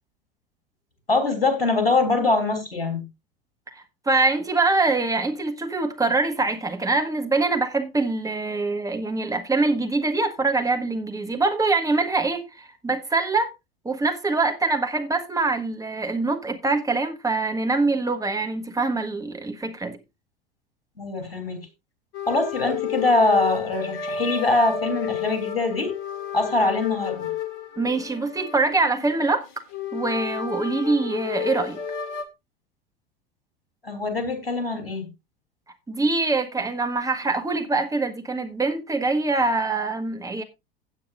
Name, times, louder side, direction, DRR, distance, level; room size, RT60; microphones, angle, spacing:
voice 1, 1.1-3.0 21.0-21.6 22.3-25.9 26.3-27.3 33.8-35.1, left 3 dB, 80° left, 3.3 m, -23 dB
voice 2, 3.7-13.5 13.8-20.0 27.8-29.4 29.9-31.8 35.9-40.4, right 3 dB, 10° right, 1.6 m, -24 dB
sound 1, 22.1-32.2, left 8 dB, 60° left, 2.1 m, -32 dB
16.0 x 8.4 x 2.5 m
figure-of-eight pair, 75°, 29 cm